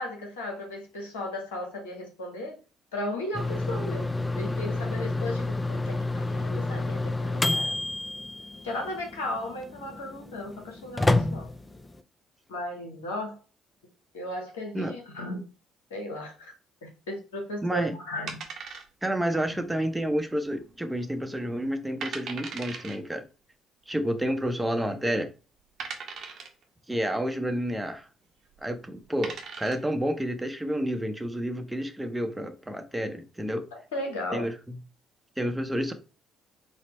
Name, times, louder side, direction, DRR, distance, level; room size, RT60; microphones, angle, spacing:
voice 1, 0.0-2.6 2.9-4.1 4.3-7.7 8.6-11.5 12.5-13.4 14.1-15.4 15.9-16.5 16.8-18.4 33.7-34.5, left 1 dB, 75° left, 0.8 m, -35 dB
sound 1, 3.3-12.0, left 2 dB, 15° left, 0.4 m, -29 dB
voice 2, 17.6-17.9 19.0-23.2 23.9-25.3 26.9-28.1 28.6-33.7 34.3-34.8 35.4-35.9, equal, 10° right, 0.7 m, -30 dB
sound 2, 18.3-19.2 19.5-19.6 20.2-20.6 21.0-21.1 21.6-21.7 22.0-23.0 24.1-24.2 24.8-24.9 25.8-26.6 28.4-28.6 29.0-29.9, right 5 dB, 55° right, 0.8 m, -38 dB
4.1 x 2.1 x 4.3 m
figure-of-eight pair, 45°, 0 cm